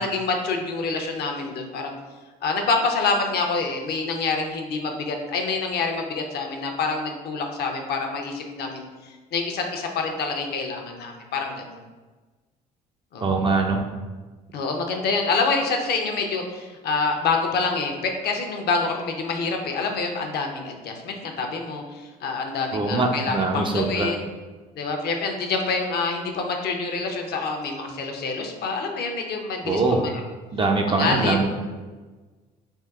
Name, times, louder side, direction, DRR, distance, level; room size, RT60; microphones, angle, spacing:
voice 1, 0.0-1.9 2.4-11.8 13.1-13.4 14.5-24.3 24.8-30.1 30.9-31.4, left 4 dB, 50° left, 3 dB, 0.5 m, -27 dB
voice 2, 13.2-13.8 22.7-24.1 29.6-30.0 30.5-31.5, right 3 dB, 25° right, 2 dB, 0.4 m, -22 dB
3.6 x 2.5 x 2.3 m, 1.3 s
hypercardioid pair, 60°, 21 cm